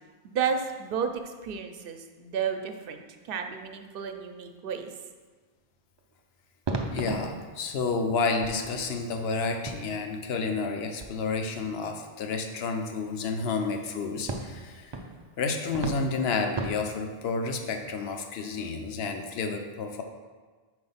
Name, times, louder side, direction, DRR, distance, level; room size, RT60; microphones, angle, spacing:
voice 1, 0.2-4.9, right 6 dB, 65° right, 6 dB, 0.8 m, -32 dB
sound 1, 6.0-6.2 6.7-11.8 13.1-13.2 14.3-17.2, right 3 dB, 40° right, 0.4 m, -38 dB
voice 2, 6.9-15.0 15.4-20.0, left 4 dB, 80° left, 5 dB, 0.9 m, -30 dB
4.8 x 4.2 x 5.6 m, 1.4 s
omnidirectional pair, 1.0 m